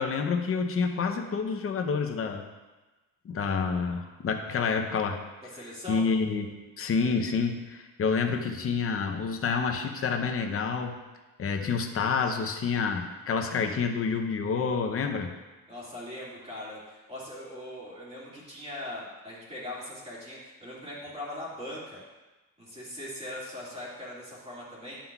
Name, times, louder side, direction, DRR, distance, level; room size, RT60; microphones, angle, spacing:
voice 1, 0.0-2.4 3.2-5.2 5.6-6.5 6.8-11.0 11.4-15.3, left 5 dB, 40° left, 4 dB, 0.7 m, -28 dB
voice 2, 5.4-6.1 15.7-22.0 22.6-25.0, left 1 dB, 15° right, -6 dB, 2.1 m, -40 dB
11.5 x 5.6 x 2.3 m, 1.2 s
cardioid pair, 155°, 36 cm